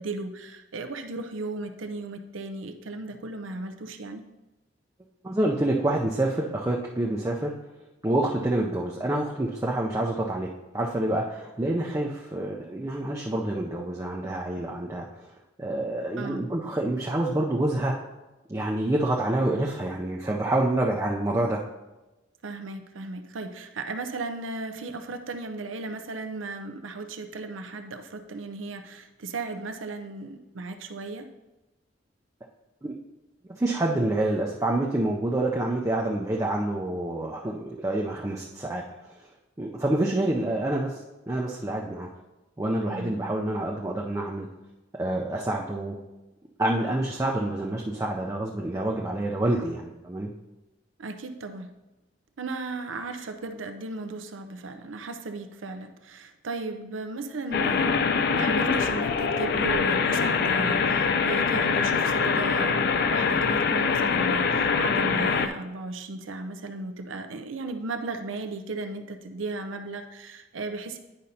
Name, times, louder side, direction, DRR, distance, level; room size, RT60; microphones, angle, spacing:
voice 1, 0.0-4.2 16.2-16.4 22.4-31.3 42.9-43.2 51.0-51.7 52.4-58.1 58.3-71.0, right 3 dB, 85° right, 6 dB, 0.6 m, -36 dB
voice 2, 5.2-7.5 8.0-15.3 15.6-17.9 18.5-21.6 32.8-32.9 33.5-38.8 39.6-41.0 41.3-42.1 42.6-44.5 45.0-46.0 46.6-50.3, right 1 dB, 15° right, -2 dB, 0.4 m, -27 dB
sound 1, 57.5-65.5, left 5 dB, 55° left, 0.4 m, -24 dB
10.0 x 5.2 x 2.8 m, 1.0 s
head